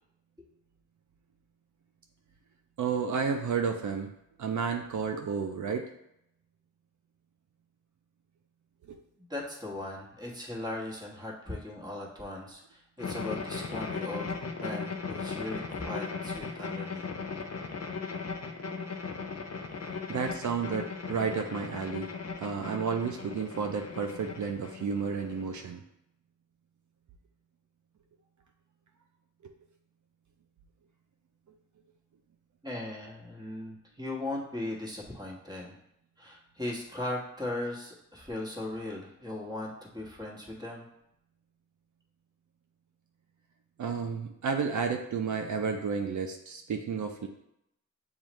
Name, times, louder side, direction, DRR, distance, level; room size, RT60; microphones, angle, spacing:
voice 1, 2.8-4.1 4.4-5.9 8.9-9.0 20.1-22.1 22.4-25.8 43.8-47.3, right 6 dB, 70° right, 4 dB, 0.5 m, -31 dB
voice 2, 9.3-17.0 32.6-35.8 36.2-40.9, left 1 dB, 15° right, -2 dB, 1.3 m, -38 dB
sound 1, 13.0-25.7, left 4 dB, 55° left, 0.7 m, -38 dB
7.1 x 2.4 x 3.1 m, 0.79 s
cardioid pair, 55°, 31 cm